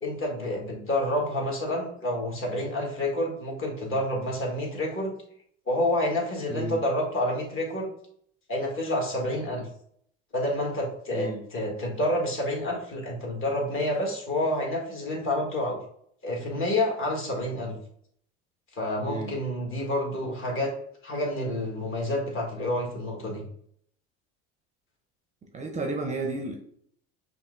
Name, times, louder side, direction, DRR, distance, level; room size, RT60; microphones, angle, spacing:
voice 1, 0.0-5.1 5.7-7.9 8.5-9.7 10.3-15.8 16.2-17.8 18.7-20.7 21.0-23.5, left 1 dB, 40° left, -1 dB, 1.3 m, -28 dB
voice 2, 6.5-6.8 11.1-11.4 19.1-19.3 25.5-26.6, right 2 dB, 20° right, 2 dB, 0.5 m, -32 dB
5.6 x 2.5 x 2.4 m, 0.66 s
supercardioid pair, 90°, 33 cm